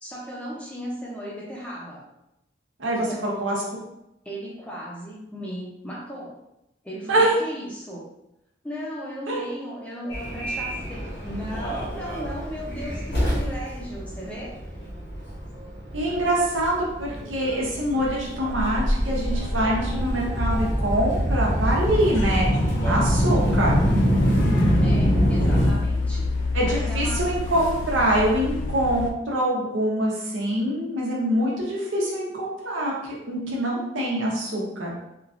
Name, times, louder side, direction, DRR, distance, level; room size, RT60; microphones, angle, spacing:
voice 1, 0.0-2.0 2.9-3.2 4.2-6.3 6.8-8.0 8.6-14.6 24.8-27.2, equal, 5° left, -5 dB, 0.5 m, -36 dB
voice 2, 2.8-3.6 7.1-7.4 9.3-9.4 15.9-22.6 22.8-23.7 26.5-34.9, right 1 dB, 90° right, -3 dB, 0.8 m, -24 dB
Subway metro underground, 10.1-25.7, equal, 60° left, 0.8 m, -25 dB
sound 1, 21.8-29.1, left 3 dB, 80° left, 0.3 m, -28 dB
3.0 x 2.4 x 2.4 m, 0.86 s
head